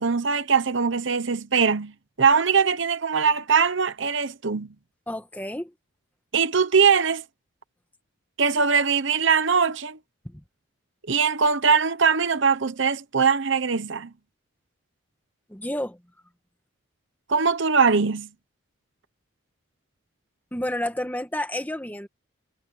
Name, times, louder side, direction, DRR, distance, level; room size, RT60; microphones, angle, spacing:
voice 1, 0.0-1.9 2.2-4.7 6.3-7.2 8.4-10.0 11.1-14.1 17.3-18.3, right 5 dB, 65° right, 0.9 m, -21 dB
voice 2, 5.1-5.7 10.2-10.4 15.5-16.0 20.5-22.1, left 1 dB, 10° left, 1.9 m, -30 dB
head